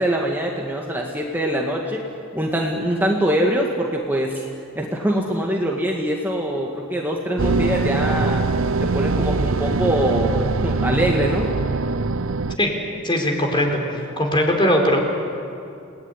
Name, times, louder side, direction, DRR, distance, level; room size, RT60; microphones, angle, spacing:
voice 1, 0.0-2.0 2.3-4.5 4.8-8.4 8.8-11.6, right 1 dB, 10° right, -1 dB, 1.9 m, -23 dB
sound 1, 7.4-12.6, right 3 dB, 75° right, 0.7 m, -22 dB
voice 2, 13.0-15.0, equal, 25° left, 2 dB, 4.2 m, -20 dB
29.5 x 19.0 x 10.0 m, 2.6 s
head